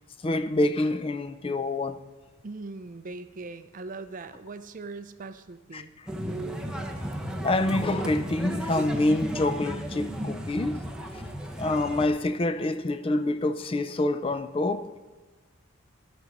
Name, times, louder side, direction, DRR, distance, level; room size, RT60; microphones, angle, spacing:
voice 1, 0.2-2.0 5.7-5.8 7.4-11.2 11.6-15.0, left 2 dB, 25° left, 0.4 m, -27 dB
voice 2, 2.4-6.0 10.5-10.6, right 3 dB, 40° right, 0.5 m, -40 dB
sound 1, 6.1-12.1, equal, 5° right, 0.8 m, -34 dB
14.5 x 6.2 x 5.3 m
head